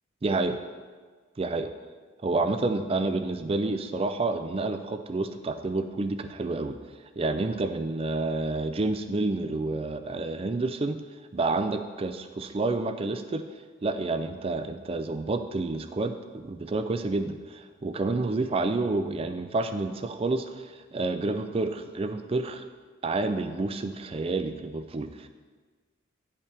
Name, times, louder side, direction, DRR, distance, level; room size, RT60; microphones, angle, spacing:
voice 1, 0.2-0.6 1.4-1.7 2.2-6.8 7.2-11.0 11.3-13.4 13.8-22.6 23.0-25.3, right 3 dB, 30° right, 9 dB, 0.4 m, -29 dB
10.5 x 5.6 x 3.3 m, 1.5 s
head